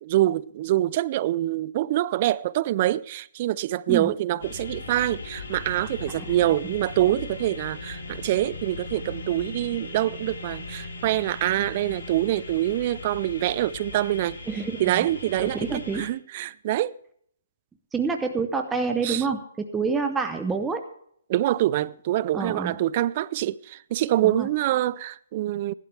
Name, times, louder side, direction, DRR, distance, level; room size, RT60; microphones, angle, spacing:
voice 1, 0.0-14.4 14.8-17.0 19.0-19.3 21.3-25.7, right 14 dB, 40° right, 0.4 m, -25 dB
sound 1, 4.4-16.1, left 3 dB, 65° left, 4.5 m, -38 dB
voice 2, 14.5-15.1 15.4-16.1 17.9-20.8 22.3-22.7 24.2-24.5, right 5 dB, 10° right, 0.7 m, -27 dB
16.5 x 12.0 x 3.4 m
hypercardioid pair, 145°, 0 cm